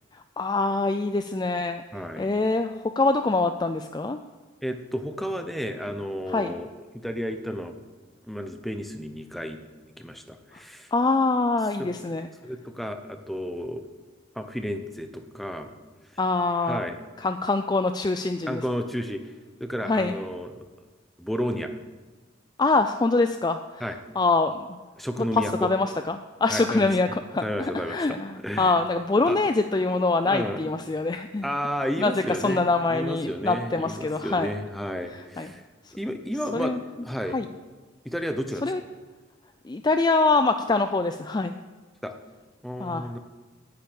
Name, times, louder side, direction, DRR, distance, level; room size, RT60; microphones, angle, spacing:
voice 1, 0.1-1.8 2.2-4.2 6.3-6.5 10.5-10.6 10.9-12.3 16.2-16.8 17.2-18.6 19.8-20.1 22.6-23.8 24.2-24.8 25.3-31.5 32.0-34.5 35.1-35.5 35.8-35.9 36.5-36.8 37.3-37.5 38.6-38.8 39.6-41.6 42.8-43.1, left 3 dB, 20° left, 8 dB, 0.3 m, -24 dB
voice 2, 1.9-2.3 4.6-7.8 8.3-9.6 10.0-10.9 11.8-11.9 12.4-13.9 14.3-15.7 16.7-17.0 18.5-19.3 19.6-20.6 21.2-21.7 23.8-24.0 25.0-25.7 26.5-26.9 27.4-28.2 28.4-28.7 29.3-29.4 30.2-30.6 31.4-32.6 32.9-35.7 36.0-36.7 37.0-37.4 38.0-38.7 42.0-42.2 42.6-43.2, equal, ahead, 6 dB, 0.8 m, -32 dB
9.9 x 9.2 x 8.7 m, 1.3 s
head